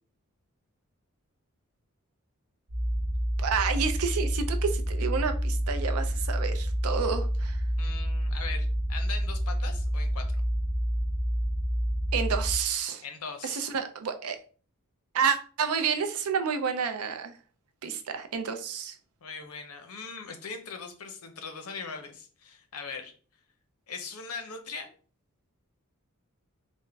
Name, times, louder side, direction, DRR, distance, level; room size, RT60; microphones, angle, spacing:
sound 1, 2.7-12.6, equal, 35° right, 0.6 m, -28 dB
voice 1, 3.4-7.6 12.1-13.0 13.4-14.4 15.1-17.3 17.8-19.0, right 6 dB, 85° right, 0.5 m, -30 dB
voice 2, 7.8-10.4 13.0-13.7 19.2-23.1 23.9-24.9, left 5 dB, 90° left, 0.7 m, -40 dB
3.5 x 2.1 x 3.4 m
head